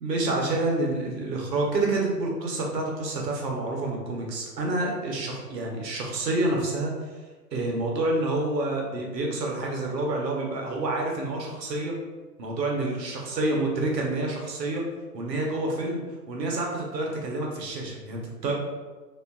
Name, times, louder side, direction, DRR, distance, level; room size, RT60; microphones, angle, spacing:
voice 1, 0.0-6.9 7.5-12.0 12.4-14.8 15.1-16.0 16.3-18.5, right 2 dB, 85° right, 0 dB, 0.8 m, -28 dB
2.5 x 2.3 x 2.2 m, 1.3 s
hypercardioid pair, 130°, 49 cm